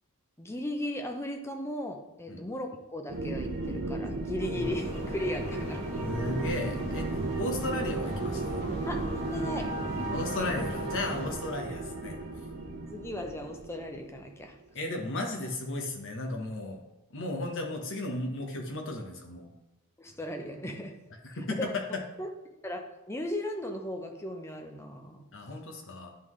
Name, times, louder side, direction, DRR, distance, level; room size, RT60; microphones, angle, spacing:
voice 1, 0.4-6.0 8.9-9.1 9.3-9.8 12.7-14.6 20.0-20.9 21.6-22.3 22.6-22.8 23.1-25.3, left 1 dB, 10° left, 3 dB, 0.6 m, -36 dB
sound 1, 3.1-14.5, right 2 dB, 70° right, 0.9 m, -35 dB
sound 2, 4.6-11.3, equal, 30° left, 1.5 m, -39 dB
voice 2, 5.9-7.1 7.4-8.7 10.1-12.2 14.7-16.8 17.1-19.5 21.2-21.8 25.3-26.1, left 1 dB, 60° left, 2 dB, 1.1 m, -35 dB
10.0 x 3.7 x 3.2 m, 1.0 s
head